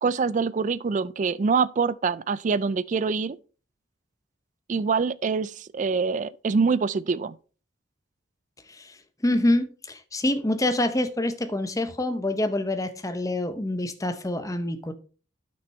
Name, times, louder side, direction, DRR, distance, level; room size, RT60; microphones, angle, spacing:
voice 1, 0.0-3.4 4.7-7.3, right 5 dB, 40° right, 0.3 m, -25 dB
voice 2, 9.2-14.9, left 1 dB, 15° left, 0.8 m, -26 dB
8.8 x 6.3 x 4.3 m
head